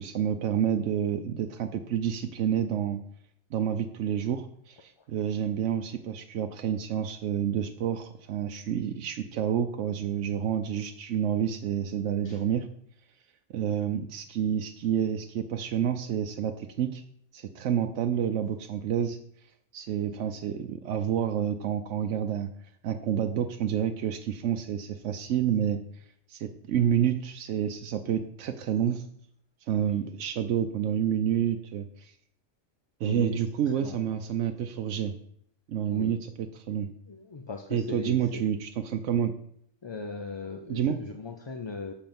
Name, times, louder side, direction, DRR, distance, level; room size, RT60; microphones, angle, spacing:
voice 1, 0.0-3.0 3.5-12.7 13.5-17.0 17.3-19.2 19.7-22.5 22.8-25.8 26.3-29.0 29.7-32.1 33.0-35.2 35.7-36.9 37.7-39.3 40.7-41.0, right 9 dB, 85° right, 6 dB, 1.0 m, -29 dB
voice 2, 33.0-33.4 33.8-34.0 35.9-36.2 37.1-38.4 39.8-41.9, left 4 dB, 35° left, 5 dB, 0.4 m, -38 dB
7.7 x 4.6 x 7.0 m, 0.68 s
omnidirectional pair, 1.2 m